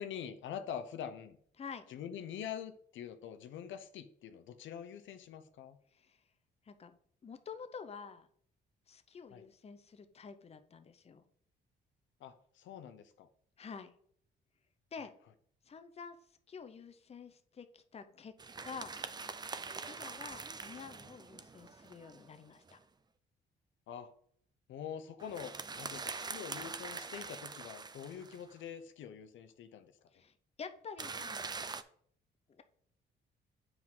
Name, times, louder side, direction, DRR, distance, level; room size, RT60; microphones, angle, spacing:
voice 1, 0.0-1.4 1.9-5.8 9.3-9.5 12.2-13.3 20.0-20.2 23.9-24.1 24.7-29.9, left 8 dB, 75° left, 9 dB, 0.7 m, -45 dB
voice 2, 7.2-8.3 8.9-11.2 13.6-13.9 14.9-15.1 15.7-16.2 16.5-18.3 18.6-18.9 19.9-22.8 30.1-31.5 32.5-32.6, left 6 dB, 30° left, 9 dB, 0.7 m, -48 dB
sound 1, 18.4-22.8 25.2-28.5 31.0-31.8, right 4 dB, 20° right, 0.5 m, -44 dB
7.9 x 4.8 x 3.7 m, 0.63 s
cardioid pair, 90°, 20 cm